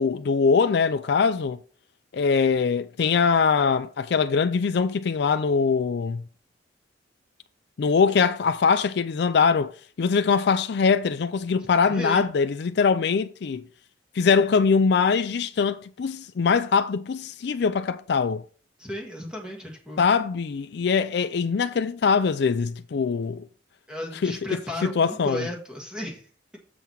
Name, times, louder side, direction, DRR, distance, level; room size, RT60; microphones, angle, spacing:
voice 1, 0.0-1.6 2.1-6.2 7.8-13.7 14.2-18.4 20.0-23.4 24.2-25.5, left 5 dB, 60° left, 0.4 m, -22 dB
voice 2, 11.8-12.3 18.8-20.0 23.9-26.3, left 1 dB, 5° right, 1.6 m, -34 dB
7.1 x 5.6 x 4.6 m
head